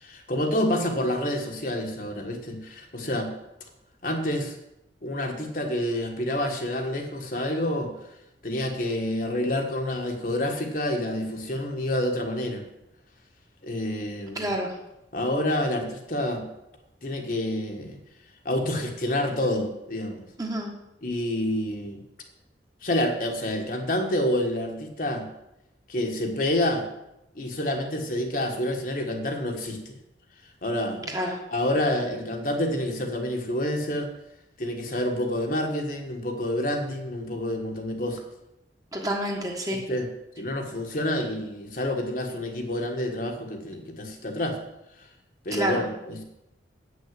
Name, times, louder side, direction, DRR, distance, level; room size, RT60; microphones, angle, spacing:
voice 1, 0.0-3.3 4.0-4.5 5.0-7.9 8.4-12.6 13.6-14.5 15.1-16.5 17.0-18.0 18.4-20.2 21.0-22.0 22.8-25.3 25.9-26.8 27.3-29.9 30.6-31.1 31.5-34.1 34.6-38.2 39.7-40.1 40.4-44.6 45.4-46.2, left 1 dB, 45° left, 2 dB, 1.5 m, -28 dB
voice 2, 14.3-14.7 20.4-20.7 31.1-31.4 38.9-39.8 45.5-45.8, right 1 dB, 20° right, 1 dB, 1.4 m, -28 dB
8.4 x 6.3 x 7.5 m, 0.87 s
head